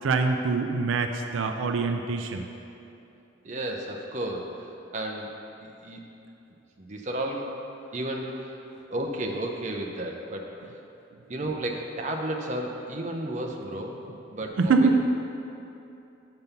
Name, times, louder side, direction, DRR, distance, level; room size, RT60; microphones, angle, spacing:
voice 1, 0.0-2.4 14.6-15.0, right 4 dB, 85° right, 5 dB, 0.4 m, -24 dB
voice 2, 3.4-5.3 5.8-6.1 6.8-7.6 7.9-8.6 8.9-10.5 11.3-14.0 14.3-15.1, right 1 dB, 35° right, 1 dB, 0.6 m, -33 dB
6.8 x 5.3 x 5.8 m, 2.8 s
head